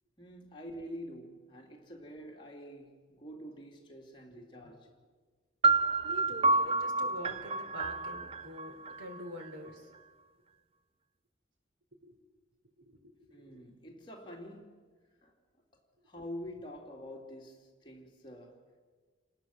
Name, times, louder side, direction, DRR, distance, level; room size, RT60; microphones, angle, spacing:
voice 1, 0.2-5.0 13.3-14.8 15.1-15.4 15.7-18.7, equal, 25° left, 3.1 m, -47 dB
sound 1, 5.6-9.5, right 3 dB, 30° right, 0.6 m, -29 dB
voice 2, 6.0-9.9 12.0-12.1 12.9-13.6, equal, 75° right, 3.7 m, -46 dB
29.0 x 19.0 x 7.3 m
head